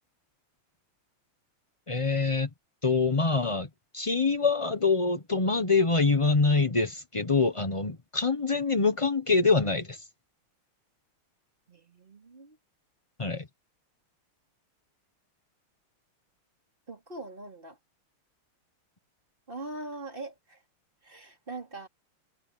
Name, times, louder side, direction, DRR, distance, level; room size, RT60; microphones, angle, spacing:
voice 1, 1.9-2.5 2.8-10.0 13.2-13.5, left 4 dB, 40° left, 0.4 m, -25 dB
voice 2, 11.7-12.6 16.9-17.8 19.5-20.6 21.0-21.9, right 2 dB, 25° right, 3.8 m, -42 dB
omnidirectional pair, 2.3 m